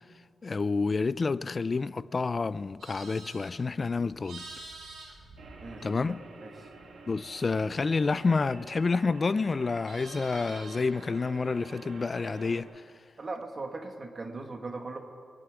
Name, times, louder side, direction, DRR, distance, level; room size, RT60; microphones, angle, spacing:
voice 1, 0.4-4.4 5.8-6.2 7.1-12.8, left 4 dB, 35° left, 0.4 m, -29 dB
Livestock farm animals working animals, 2.5-6.3 6.6-9.1 9.4-11.0, right 3 dB, 90° right, 3.8 m, -49 dB
sound 1, 5.4-12.6, right 3 dB, 70° right, 2.0 m, -48 dB
voice 2, 13.2-15.0, right 3 dB, 35° right, 1.7 m, -38 dB
23.5 x 11.5 x 4.9 m
cardioid pair, 105°, 0 cm